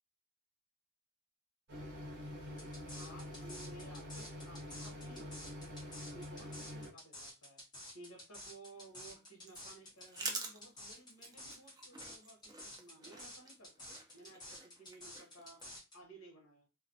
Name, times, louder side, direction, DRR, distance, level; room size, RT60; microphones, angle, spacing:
sound 1, 1.7-6.9, left 1 dB, 55° right, 0.8 m, -46 dB
voice 1, 2.3-2.7 3.0-5.6 6.1-7.6 7.9-15.7 15.9-16.7, right 2 dB, 65° left, 1 dB, 0.9 m, -57 dB
sound 2, 2.6-15.9, left 1 dB, 20° left, 0.9 m, -51 dB
sound 3, 8.7-15.7, right 3 dB, 20° right, 0.4 m, -48 dB
2.3 x 2.0 x 2.6 m, 0.29 s
head